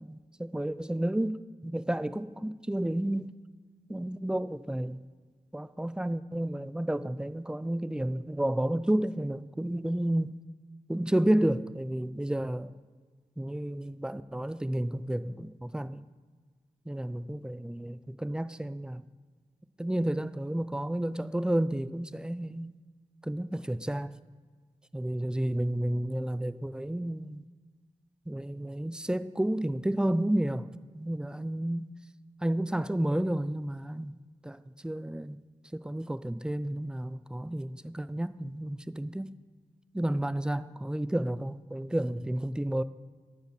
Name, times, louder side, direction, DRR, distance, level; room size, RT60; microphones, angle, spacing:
voice 1, 0.0-1.4 1.6-3.3 3.9-5.0 5.5-10.4 10.9-12.7 13.4-16.0 16.9-19.0 19.8-22.7 23.2-24.1 24.9-27.4 28.3-30.7 30.9-31.9 32.4-34.2 34.4-35.4 35.7-39.4 39.9-42.8, right 1 dB, 5° right, 15 dB, 0.3 m, -31 dB
10.0 x 5.5 x 6.0 m, 1.5 s
wide cardioid pair, 70°, 13 cm